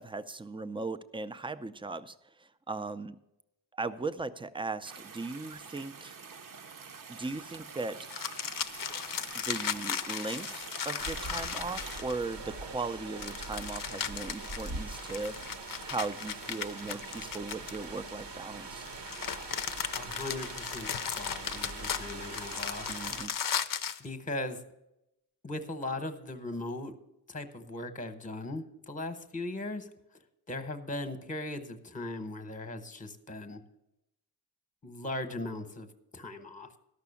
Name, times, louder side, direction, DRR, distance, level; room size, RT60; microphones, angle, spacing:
voice 1, 0.0-3.2 3.7-6.2 7.1-8.0 9.3-15.4 15.8-18.9 22.9-23.3, right 3 dB, 10° right, 12 dB, 0.5 m, -38 dB
sound 1, 4.8-12.0, right 5 dB, 50° right, 0.8 m, -46 dB
sound 2, 8.0-12.3 13.2-18.1 18.8-24.0, left 8 dB, 55° left, 0.6 m, -36 dB
sound 3, 11.0-23.3, right 3 dB, 75° right, 1.1 m, -42 dB
voice 2, 19.9-23.0 24.0-24.6 25.4-27.0 27.3-29.9 30.5-33.6 34.8-35.9 36.1-36.7, left 2 dB, 20° left, 8 dB, 1.0 m, -38 dB
13.0 x 6.0 x 7.0 m, 0.88 s
wide cardioid pair, 95°, 42 cm